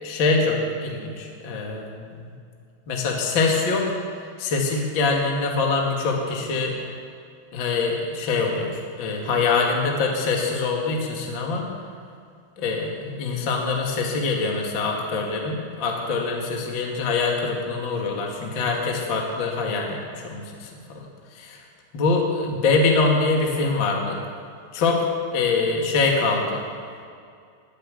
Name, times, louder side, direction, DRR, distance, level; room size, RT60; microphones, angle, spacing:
voice 1, 0.0-2.2 2.9-3.9 4.4-6.8 7.5-11.7 12.6-21.0 21.3-21.6 21.9-24.2 24.7-26.6, left 3 dB, 55° left, 0 dB, 1.3 m, -24 dB
21.5 x 7.7 x 8.3 m, 2.3 s
omnidirectional pair, 5.7 m